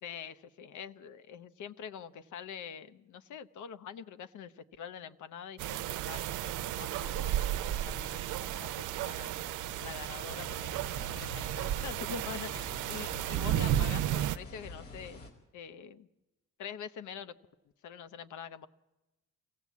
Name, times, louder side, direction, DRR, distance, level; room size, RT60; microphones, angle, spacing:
voice 1, 0.0-9.3 9.8-15.2 15.5-16.1 16.6-17.4 17.8-18.7, left 7 dB, 75° left, 12 dB, 0.9 m, -45 dB
sound 1, 5.6-14.4, right 12 dB, 80° right, 0.6 m, -33 dB
sound 2, 6.9-15.3, equal, 25° left, 1.2 m, -52 dB
sound 3, 10.3-15.3, left 4 dB, 50° left, 4.7 m, -47 dB
24.5 x 16.0 x 8.4 m, 1.1 s
cardioid pair, 90°, 30 cm